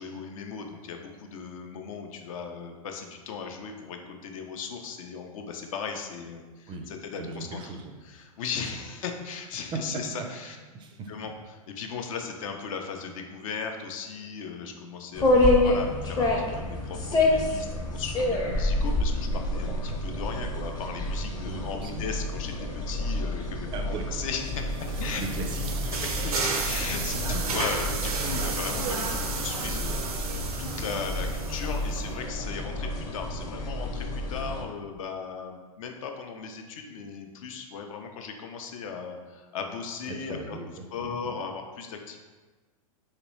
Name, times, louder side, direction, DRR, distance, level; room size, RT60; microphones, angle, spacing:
voice 1, 0.0-7.7 8.0-10.6 11.1-11.3 11.8-25.2 26.0-40.6 40.9-42.2, left 5 dB, 65° left, 4 dB, 0.5 m, -37 dB
voice 2, 7.2-8.0 9.7-9.8 10.2-11.1 21.4-22.0 23.7-24.1 24.9-25.9 40.1-40.7 41.0-41.4, right 4 dB, 25° right, 3 dB, 0.4 m, -38 dB
sound 1, 15.1-34.6, left 1 dB, 20° left, 0.6 m, -28 dB
sound 2, 24.4-32.0, right 4 dB, 85° right, 0.5 m, -33 dB
3.1 x 2.9 x 3.0 m, 1.3 s
hypercardioid pair, 110°, 18 cm